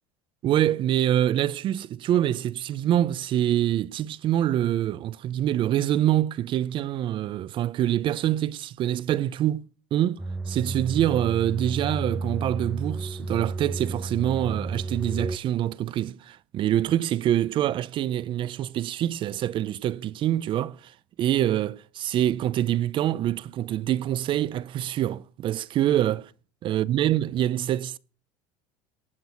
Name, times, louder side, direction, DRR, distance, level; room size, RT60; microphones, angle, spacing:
voice 1, 0.4-9.6 9.9-26.3 26.6-28.0, right 12 dB, 40° right, 0.7 m, -25 dB
sound 1, 10.2-15.4, right 3 dB, 5° right, 0.6 m, -32 dB
18.5 x 6.2 x 9.5 m
supercardioid pair, 125°, 13 cm